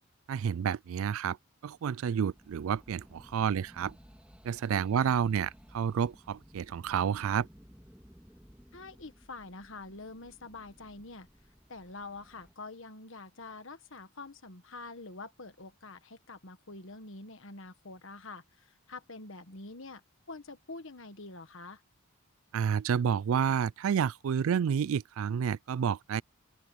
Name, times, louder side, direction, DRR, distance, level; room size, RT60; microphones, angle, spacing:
voice 1, 0.3-1.4 1.6-3.9 4.4-7.5 22.5-26.2, right 7 dB, 70° right, 0.3 m, -30 dB
sound 1, 2.1-12.5, equal, 5° right, 3.8 m, -57 dB
voice 2, 8.7-11.3 11.7-20.0 20.3-21.8, left 3 dB, 60° left, 1.5 m, -46 dB
open air
head